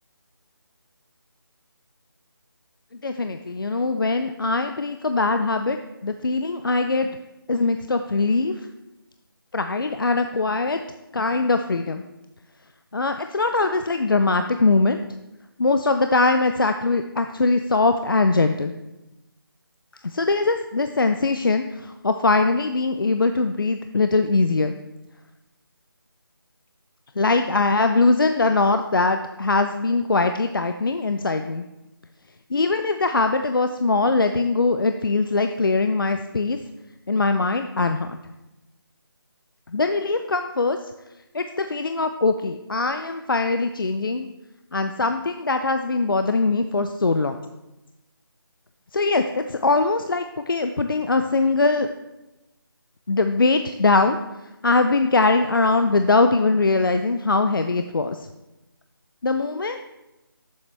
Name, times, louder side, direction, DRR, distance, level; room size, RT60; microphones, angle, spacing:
voice 1, 3.0-5.8 6.0-7.1 7.5-8.5 9.5-10.8 11.1-12.0 12.9-15.0 15.6-18.7 20.0-24.7 27.2-31.6 32.5-36.6 37.1-38.2 39.7-40.8 41.3-44.3 44.7-47.4 48.9-51.9 53.1-54.2 54.6-58.3 59.2-59.8, left 3 dB, 60° left, 8 dB, 0.5 m, -21 dB
11.0 x 7.1 x 3.3 m, 0.99 s
figure-of-eight pair, 175°, 13 cm